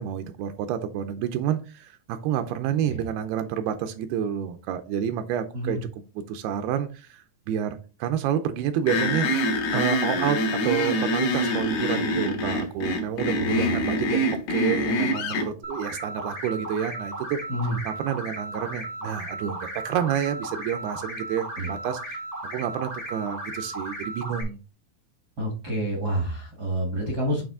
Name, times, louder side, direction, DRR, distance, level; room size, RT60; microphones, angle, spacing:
voice 1, 0.0-5.8 6.3-17.4 17.8-22.2 22.5-24.6, right 9 dB, 85° right, 8 dB, 2.5 m, -29 dB
sound 1, 8.9-15.5, left 1 dB, 85° left, 3.2 m, -25 dB
voice 2, 13.4-13.8 17.5-17.8 21.6-21.7 25.4-27.4, right 1 dB, 60° right, 0 dB, 1.0 m, -28 dB
sound 2, 15.6-24.4, right 1 dB, 40° right, 0.5 m, -35 dB
8.8 x 3.2 x 3.6 m, 0.33 s
omnidirectional pair, 4.5 m